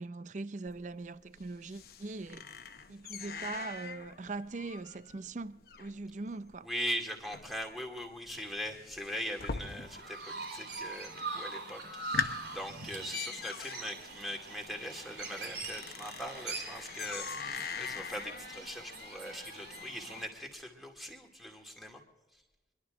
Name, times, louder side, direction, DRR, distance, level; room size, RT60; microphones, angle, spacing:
voice 1, 0.0-2.4 2.9-6.7, right 3 dB, 45° right, 0.5 m, -41 dB
sound 1, 0.7-10.2 10.5-11.1 11.5-11.6 11.9-20.2, left 5 dB, 55° left, 0.9 m, -43 dB
voice 2, 6.6-22.0, equal, ahead, 2.2 m, -41 dB
Chirp tweet, 9.6-20.2, right 3 dB, 75° right, 3.5 m, -43 dB
25.5 x 11.5 x 3.8 m
head